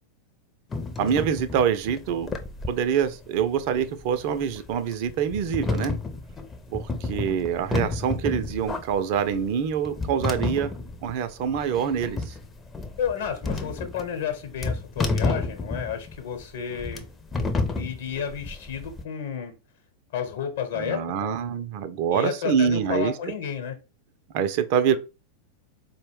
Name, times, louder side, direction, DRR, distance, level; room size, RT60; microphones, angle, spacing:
sound 1, 0.7-19.0, left 3 dB, 15° left, 0.5 m, -31 dB
voice 1, 1.0-2.3 2.7-6.0 6.7-10.7 11.0-12.3 20.8-23.1 24.3-25.0, right 8 dB, 45° right, 0.3 m, -25 dB
voice 2, 13.0-17.1 17.8-19.5 20.1-21.4 22.1-23.7, left 8 dB, 60° left, 0.9 m, -31 dB
4.1 x 2.1 x 3.2 m
figure-of-eight pair, 90°, 0 cm